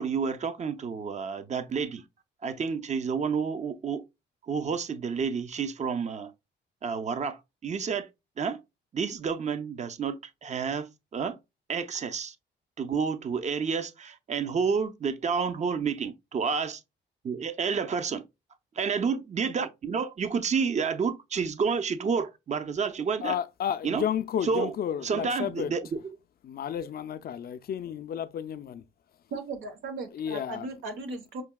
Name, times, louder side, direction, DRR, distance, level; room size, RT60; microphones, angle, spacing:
voice 1, 0.0-2.0 2.4-4.0 4.5-6.3 6.8-8.1 8.4-8.6 8.9-11.4 11.7-12.3 12.8-16.8 17.2-18.2 18.8-23.4 23.8-24.0 24.4-24.7 25.0-25.9, right 5 dB, 35° right, 0.6 m, -30 dB
voice 2, 23.2-25.7 26.4-28.8 30.1-30.7, left 9 dB, 50° left, 0.4 m, -32 dB
voice 3, 29.3-31.4, right 3 dB, 90° right, 1.1 m, -37 dB
5.8 x 2.7 x 2.2 m
cardioid pair, 90°, 20 cm